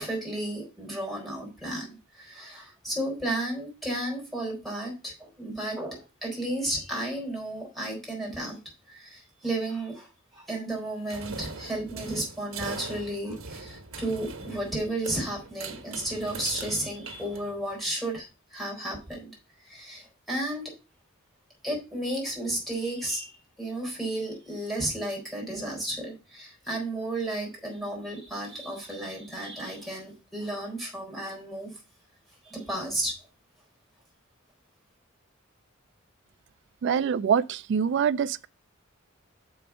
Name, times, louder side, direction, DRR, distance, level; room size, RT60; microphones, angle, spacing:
voice 1, 0.0-8.6 8.9-10.1 10.3-19.3 19.7-20.7 21.6-31.8 32.4-33.1, right 1 dB, ahead, 3.8 m, -33 dB
sound 1, 11.1-17.8, right 4 dB, 85° right, 1.3 m, -41 dB
voice 2, 36.8-38.5, right 7 dB, 55° right, 0.3 m, -25 dB
6.9 x 5.1 x 5.9 m
head